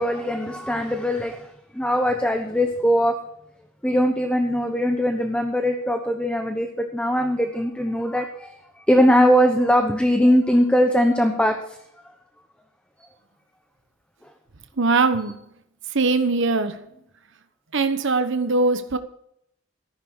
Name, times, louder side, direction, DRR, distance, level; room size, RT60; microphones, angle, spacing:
voice 1, 0.0-3.2 3.8-11.8, equal, 5° left, 1.1 m, -21 dB
voice 2, 14.8-15.4 15.9-16.9 17.7-19.0, right 3 dB, 65° right, 1.1 m, -21 dB
13.5 x 11.5 x 4.5 m
head